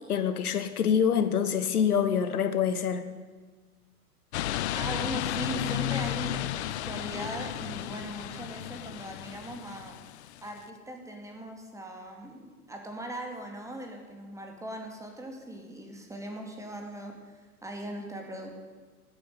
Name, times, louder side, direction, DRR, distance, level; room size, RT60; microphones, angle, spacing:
voice 1, 0.1-3.1, left 7 dB, 70° left, 11 dB, 1.3 m, -26 dB
sound 1, 4.3-10.6, left 13 dB, 45° left, 0.7 m, -33 dB
voice 2, 4.7-10.0 10.4-18.5, right 1 dB, 5° right, 2 dB, 2.4 m, -40 dB
13.5 x 9.6 x 9.3 m, 1.4 s
figure-of-eight pair, 105°, 46 cm